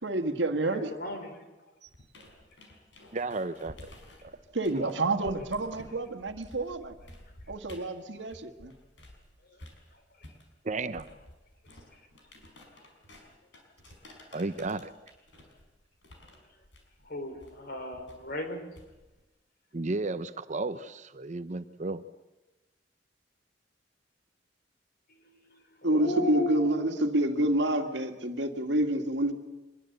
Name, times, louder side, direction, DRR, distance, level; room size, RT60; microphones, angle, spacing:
voice 1, 0.0-0.9 4.5-7.0 7.5-8.7, right 3 dB, 90° right, 7 dB, 1.7 m, -31 dB
voice 2, 0.7-1.3 4.8-5.3 9.5-9.6 17.0-18.6 25.2-28.7, left 1 dB, 55° left, 6 dB, 4.4 m, -37 dB
sound 1, 1.9-9.3 9.6-19.2, left 1 dB, 85° left, 5.5 m, -52 dB
voice 3, 3.1-3.9 4.8-4.9 10.6-11.1 14.3-14.9 19.7-22.0, right 3 dB, 40° right, 12 dB, 0.7 m, -33 dB
voice 4, 25.8-29.3, right 1 dB, 70° right, 6 dB, 2.2 m, -26 dB
24.5 x 21.0 x 8.0 m, 1.1 s
head